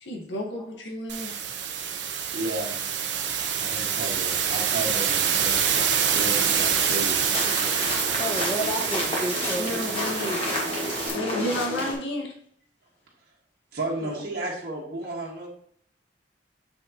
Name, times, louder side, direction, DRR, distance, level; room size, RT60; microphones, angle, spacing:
voice 1, 0.0-1.3 9.6-10.4 11.1-12.3, left 1 dB, 80° left, 0 dB, 1.6 m, -31 dB
sound 1, 1.1-11.1, right 8 dB, 75° right, 0.9 m, -26 dB
voice 2, 2.3-2.7 3.6-5.5 6.1-7.3 13.7-15.5, right 2 dB, 50° right, -4 dB, 1.6 m, -33 dB
sound 2, 5.7-11.9, left 1 dB, 30° left, 1.8 m, -31 dB
voice 3, 8.2-9.8 14.0-14.2, right 1 dB, 15° left, 0 dB, 1.4 m, -31 dB
6.9 x 6.3 x 2.9 m, 0.65 s
head